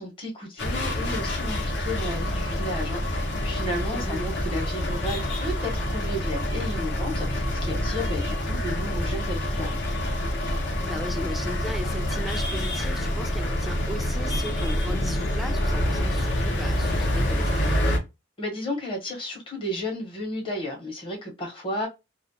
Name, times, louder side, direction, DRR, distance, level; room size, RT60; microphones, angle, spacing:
voice 1, 0.0-9.8 18.4-21.9, left 1 dB, 30° left, 1.0 m, -33 dB
sound 1, 0.6-18.0, left 1 dB, 60° left, 0.8 m, -27 dB
voice 2, 3.9-4.3 10.8-17.9, equal, ahead, 0.4 m, -37 dB
2.4 x 2.0 x 2.7 m
head